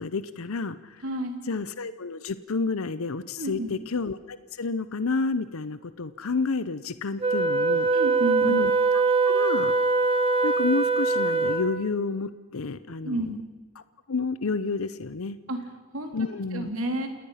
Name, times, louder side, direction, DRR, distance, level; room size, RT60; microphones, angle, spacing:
voice 1, 0.0-1.0 1.5-7.9 8.4-9.7 10.4-13.3 14.1-15.4 16.1-16.7, left 4 dB, 70° left, 14 dB, 0.7 m, -30 dB
voice 2, 1.0-1.4 3.4-3.8 7.9-8.5 13.0-13.4 15.5-15.6 15.9-16.1 16.5-17.1, right 1 dB, 70° right, 4 dB, 3.4 m, -30 dB
Wind instrument woodwind instrument, 7.2-11.8, right 3 dB, 25° right, 1.2 m, -23 dB
28.5 x 19.0 x 5.8 m, 1.4 s
head